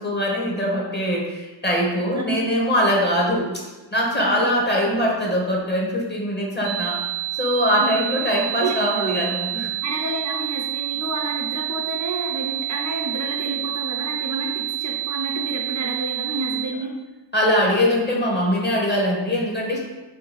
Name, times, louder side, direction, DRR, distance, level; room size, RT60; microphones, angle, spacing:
voice 1, 0.0-3.5 3.9-7.0 7.3-9.7 17.3-19.8, equal, 25° left, -2 dB, 0.9 m, -22 dB
voice 2, 4.2-4.5 7.8-8.0 8.6-9.2 9.8-16.9, right 2 dB, 40° right, 0 dB, 0.5 m, -30 dB
sound 1, 6.6-16.6, right 16 dB, 60° left, 1.3 m, -28 dB
3.5 x 2.2 x 3.0 m, 1.2 s
cardioid pair, 40°, 44 cm